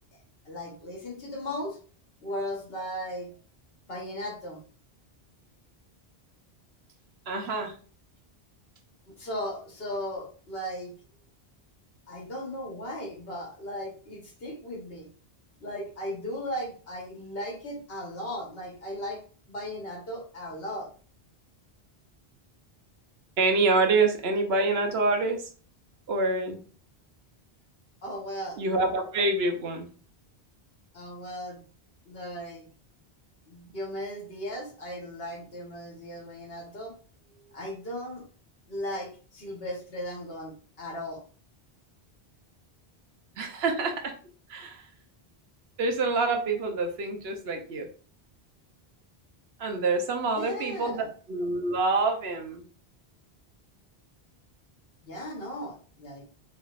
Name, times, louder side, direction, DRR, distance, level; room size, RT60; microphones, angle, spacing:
voice 1, 0.4-1.8 2.2-3.3 3.9-4.6 9.1-10.9 12.1-15.1 15.6-19.2 19.5-20.9 28.0-28.6 30.9-31.6 32.0-32.7 33.5-36.9 37.3-38.2 38.7-41.2 50.4-51.1 55.0-56.4, equal, 70° left, 0 dB, 1.5 m, -37 dB
voice 2, 7.3-7.7 23.4-25.5 26.1-26.6 28.6-29.9 43.4-44.1 44.5-44.9 45.8-47.9 49.6-51.0 51.3-52.6, right 3 dB, 80° right, 4 dB, 1.0 m, -26 dB
4.1 x 3.3 x 2.4 m, 0.40 s
omnidirectional pair, 1.1 m